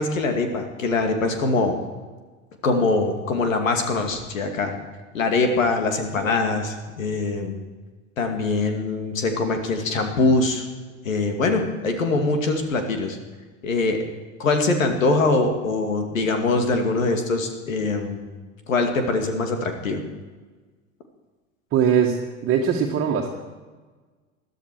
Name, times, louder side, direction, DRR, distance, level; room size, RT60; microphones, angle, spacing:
voice 1, 0.0-1.8 2.6-4.8 5.1-7.6 8.2-10.7 11.0-13.2 13.6-14.0 14.4-18.2 18.7-20.0, left 3 dB, 70° left, 5 dB, 2.5 m, -23 dB
voice 2, 21.7-23.3, right 7 dB, 30° right, -1 dB, 1.9 m, -21 dB
21.5 x 13.5 x 4.7 m, 1.3 s
figure-of-eight pair, 80°, 41 cm